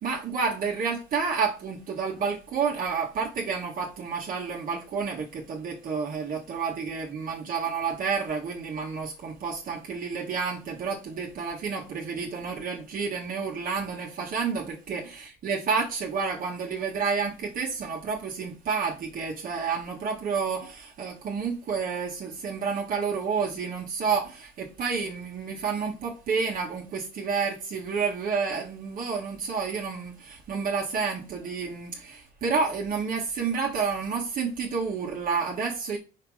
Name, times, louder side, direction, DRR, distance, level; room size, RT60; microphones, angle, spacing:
voice 1, 0.0-36.0, right 5 dB, 55° right, 1.6 m, -30 dB
5.6 x 3.7 x 4.8 m
cardioid pair, 110°, 17 cm